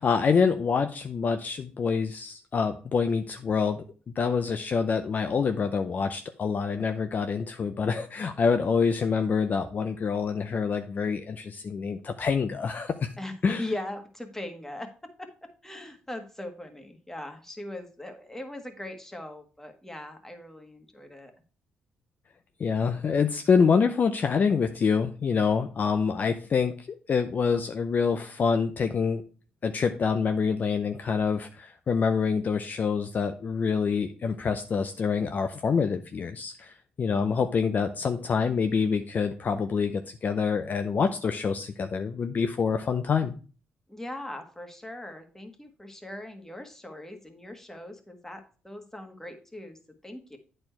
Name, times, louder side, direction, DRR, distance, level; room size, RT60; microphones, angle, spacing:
voice 1, 0.0-3.8 4.2-13.1 13.4-13.6 22.6-29.2 29.6-43.3, left 5 dB, 45° left, 8 dB, 0.6 m, -26 dB
voice 2, 13.2-21.3 43.9-50.4, left 1 dB, 10° left, 6 dB, 1.6 m, -40 dB
8.6 x 4.4 x 4.5 m, 0.38 s
supercardioid pair, 70°, 4 cm